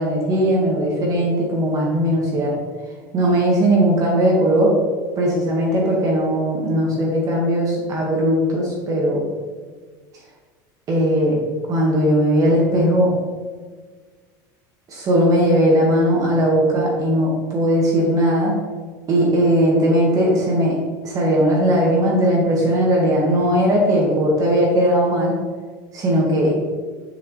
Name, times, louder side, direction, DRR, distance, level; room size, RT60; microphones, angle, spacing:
voice 1, 0.0-2.5 3.1-4.7 5.2-9.2 10.9-11.4 11.7-13.1 14.9-18.5 19.1-20.8 21.0-25.4 25.9-26.5, equal, 35° right, -2 dB, 1.4 m, -18 dB
6.9 x 4.7 x 3.1 m, 1.5 s
supercardioid pair, 135°, 10 cm